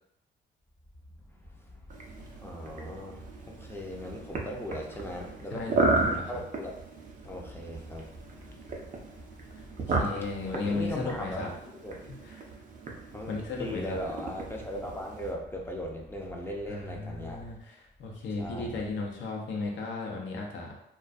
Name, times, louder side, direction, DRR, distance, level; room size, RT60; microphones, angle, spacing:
voice 1, 1.3-5.7 6.3-6.7 7.2-10.0 10.5-12.0 13.1-17.6 18.4-18.8, equal, 10° left, 0 dB, 0.5 m, -39 dB
sound 1, 1.9-15.3, right 3 dB, 40° right, 0.5 m, -35 dB
voice 2, 5.5-6.3 9.9-11.5 12.2-12.4 13.3-14.0 16.7-20.7, left 3 dB, 70° left, -1 dB, 0.6 m, -35 dB
2.3 x 2.2 x 2.5 m, 0.77 s
cardioid pair, 90°, 20 cm